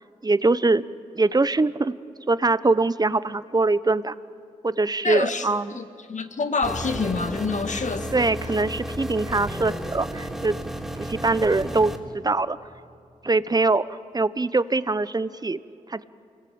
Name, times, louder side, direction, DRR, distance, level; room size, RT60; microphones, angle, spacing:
voice 1, 0.2-0.8 1.1-2.0 2.3-4.1 4.6-5.8 8.1-10.6 11.0-12.6 13.2-13.8 14.1-15.6 15.9-16.0, right 3 dB, 30° right, 15 dB, 0.9 m, -23 dB
voice 2, 5.0-5.5 5.8-8.3, left 4 dB, 60° left, 8 dB, 1.8 m, -27 dB
sound 1, 6.6-12.0, equal, ahead, 3.5 m, -33 dB
26.5 x 20.0 x 8.8 m, 2.5 s
supercardioid pair, 40°, 14 cm